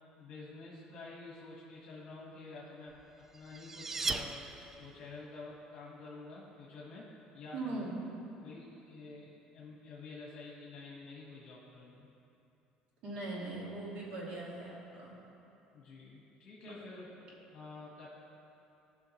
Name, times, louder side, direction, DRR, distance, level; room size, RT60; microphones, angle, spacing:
voice 1, 0.2-4.4 4.8-7.8 8.4-12.1 15.7-17.2 17.5-18.1, left 3 dB, 45° left, -5 dB, 1.6 m, -49 dB
sound 1, 3.0-5.1, right 3 dB, 15° right, 0.3 m, -38 dB
voice 2, 7.5-8.0 13.0-15.2 16.6-16.8, right 2 dB, 60° right, -4 dB, 2.1 m, -40 dB
15.0 x 5.7 x 3.2 m, 2.9 s
cardioid pair, 145°, 2 cm